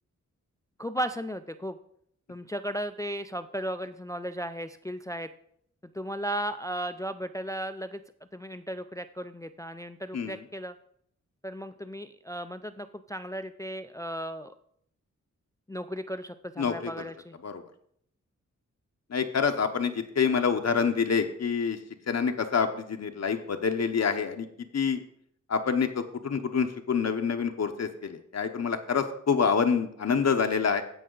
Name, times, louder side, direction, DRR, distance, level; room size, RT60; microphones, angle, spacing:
voice 1, 0.8-1.8 2.3-5.3 5.9-8.0 8.3-10.7 11.4-14.5 15.7-17.4, equal, 10° left, 10 dB, 0.3 m, -35 dB
voice 2, 16.6-17.1 17.4-17.6 19.1-21.8 22.1-24.5 24.7-25.0 25.5-30.8, left 6 dB, 60° left, 6 dB, 0.8 m, -27 dB
16.0 x 5.5 x 3.8 m, 0.67 s
wide cardioid pair, 145°, 30 cm